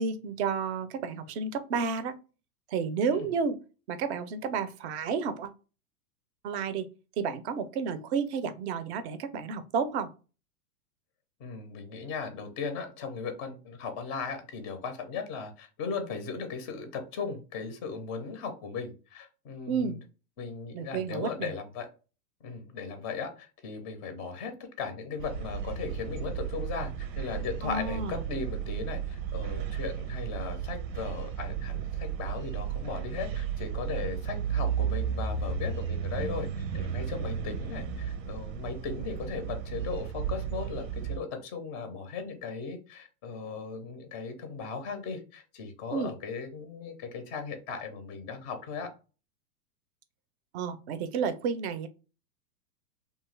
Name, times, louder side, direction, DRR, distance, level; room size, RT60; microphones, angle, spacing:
voice 1, 0.0-2.2 2.7-3.6 3.9-5.5 6.4-6.9 7.2-10.1 19.7-20.0 20.7-21.5 27.6-28.2 45.9-46.1 50.5-51.9, right 5 dB, 45° right, 0.5 m, -31 dB
voice 2, 11.4-20.0 20.4-21.9 22.4-36.5 36.7-48.9, left 5 dB, 20° left, 0.4 m, -37 dB
sound 1, 25.2-41.2, right 7 dB, 80° right, 0.7 m, -34 dB
2.8 x 2.3 x 3.1 m
hypercardioid pair, 120°, 49 cm